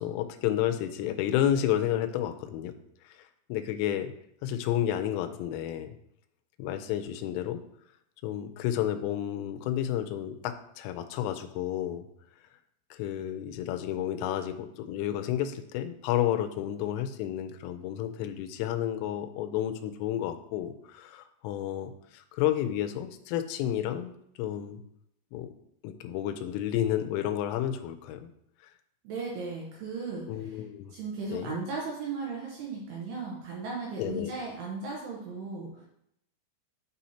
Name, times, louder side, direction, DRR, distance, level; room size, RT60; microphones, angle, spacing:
voice 1, 0.0-2.8 3.1-3.2 3.5-4.1 4.4-5.9 6.6-7.6 8.2-12.1 12.9-24.1 24.4-24.8 25.3-25.5 25.8-28.3 30.3-31.0 31.3-31.6 34.0-34.3, left 11 dB, 85° left, 7 dB, 3.1 m, -31 dB
voice 2, 29.0-30.6 30.9-35.9, right 4 dB, 75° right, -3 dB, 2.6 m, -36 dB
9.3 x 4.2 x 2.8 m, 0.74 s
omnidirectional pair, 5.8 m